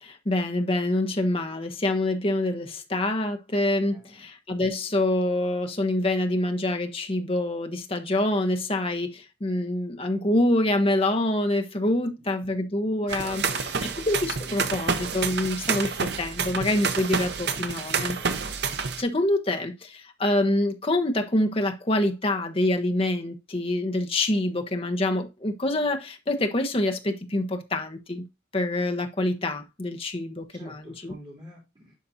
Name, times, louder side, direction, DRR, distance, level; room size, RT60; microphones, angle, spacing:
voice 1, 0.0-13.4 14.0-18.2 19.0-28.3 28.5-31.1, left 1 dB, 30° left, 1.1 m, -26 dB
voice 2, 3.8-4.2 11.9-12.1 13.0-13.9 18.1-18.3 30.5-31.9, equal, 30° right, 3.0 m, -47 dB
sound 1, 13.1-19.0, right 5 dB, 60° right, 0.8 m, -29 dB
11.5 x 4.2 x 2.7 m
head